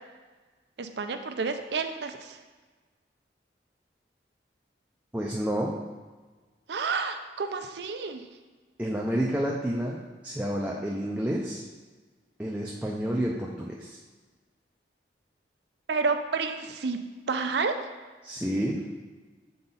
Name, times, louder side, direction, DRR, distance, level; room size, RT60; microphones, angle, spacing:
voice 1, 0.8-2.4 6.7-8.2 15.9-17.0 17.3-17.8, right 4 dB, 75° right, 7 dB, 0.5 m, -30 dB
voice 2, 5.1-5.8 8.8-11.6 12.4-14.0 18.2-18.8, equal, 10° right, -2 dB, 0.5 m, -30 dB
7.7 x 3.9 x 4.0 m, 1.3 s
head